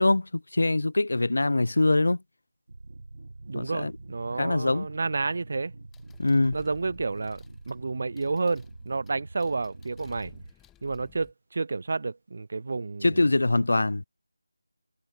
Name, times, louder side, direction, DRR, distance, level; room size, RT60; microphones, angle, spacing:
voice 1, 0.0-2.2 3.5-3.9 4.4-4.9 6.2-6.6 13.0-14.0, left 2 dB, 70° left, 0.5 m, -23 dB
sound 1, 2.7-10.5, right 2 dB, 65° right, 1.8 m, -45 dB
voice 2, 3.5-5.7 6.5-10.3 10.8-13.3, right 3 dB, 50° right, 0.5 m, -30 dB
sound 2, 5.9-11.3, left 12 dB, 5° left, 2.5 m, -59 dB
figure-of-eight pair, 165°, 0 cm